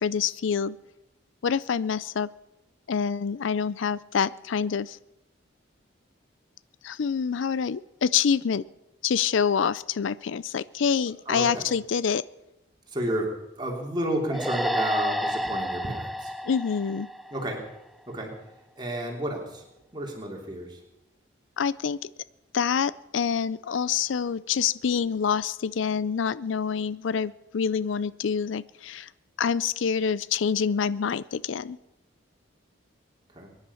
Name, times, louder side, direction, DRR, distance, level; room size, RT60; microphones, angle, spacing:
voice 1, 0.0-0.8 1.4-2.3 2.9-5.0 6.8-8.6 9.0-12.2 16.4-17.1 21.6-22.1 22.5-29.1 29.4-31.8, left 6 dB, 80° left, 19 dB, 0.4 m, -26 dB
voice 2, 11.3-11.7 12.9-16.3 17.3-17.7 18.1-18.3 18.8-19.6 19.9-20.8 33.3-33.5, right 1 dB, 20° right, 0 dB, 3.1 m, -31 dB
sound 1, 14.3-17.8, equal, ahead, 0.5 m, -30 dB
23.5 x 10.5 x 5.6 m, 0.93 s
head